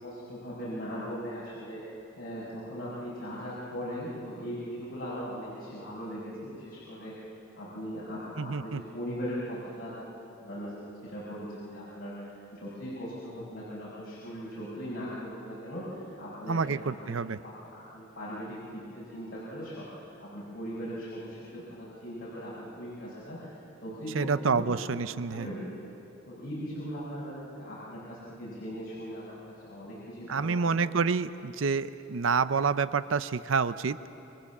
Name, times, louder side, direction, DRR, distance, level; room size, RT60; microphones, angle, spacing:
voice 1, 0.0-7.1 7.5-9.9 10.4-10.7 11.0-17.2 17.4-25.0 25.3-25.7 26.3-27.3 27.6-30.9, equal, 50° left, -9 dB, 6.0 m, -39 dB
voice 2, 8.4-8.8 16.5-17.4 24.2-25.5 30.3-34.0, right 5 dB, 80° right, 14 dB, 0.6 m, -28 dB
28.0 x 22.5 x 7.3 m, 2.8 s
head